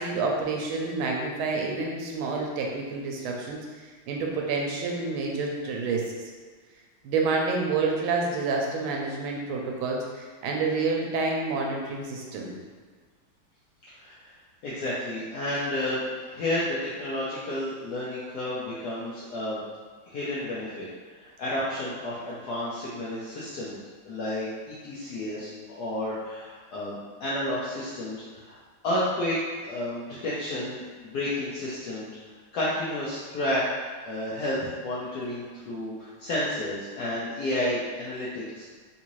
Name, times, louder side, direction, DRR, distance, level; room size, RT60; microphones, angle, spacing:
voice 1, 0.0-3.6 4.1-6.0 7.0-12.5, right 3 dB, 75° right, 0 dB, 1.4 m, -28 dB
voice 2, 13.9-14.3 14.6-19.6 20.1-20.9 21.1-23.8 24.0-28.6 28.8-29.4 29.6-32.1 32.5-33.6 34.0-38.6, left 1 dB, 85° left, -8 dB, 0.8 m, -31 dB
3.7 x 2.6 x 3.0 m, 1.5 s
omnidirectional pair, 2.4 m